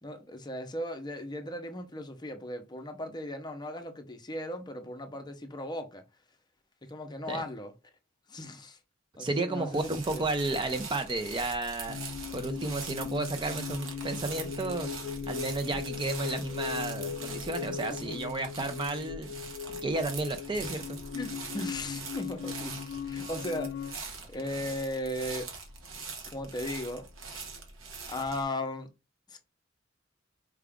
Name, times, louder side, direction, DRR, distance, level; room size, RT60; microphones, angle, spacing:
voice 1, 0.0-6.0 6.8-7.7 8.3-8.8 9.2-10.2 15.7-15.8 17.9-18.2 20.6-20.7 21.1-22.8 23.1-24.0 24.3-25.5 26.3-27.0 28.1-28.9 29.3-29.4, left 1 dB, 20° left, 0.7 m, -37 dB
voice 2, 9.2-12.0 12.3-14.9 15.3-19.3 19.8-20.8, right 2 dB, 25° right, 0.4 m, -32 dB
sound 1, 9.7-28.4, right 4 dB, 85° right, 1.0 m, -43 dB
sound 2, 11.9-23.9, left 7 dB, 60° left, 0.3 m, -39 dB
4.7 x 2.4 x 3.4 m
head